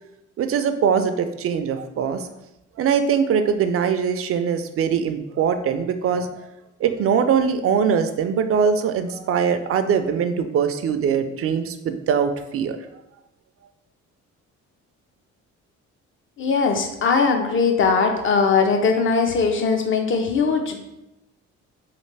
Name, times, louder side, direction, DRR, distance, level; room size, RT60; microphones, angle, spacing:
voice 1, 0.4-2.3 2.8-6.4 6.8-12.8, right 7 dB, 50° right, 8 dB, 0.4 m, -22 dB
voice 2, 16.4-20.8, left 5 dB, 40° left, 4 dB, 0.6 m, -20 dB
3.2 x 2.4 x 3.3 m, 0.92 s
cardioid pair, 90°, 30 cm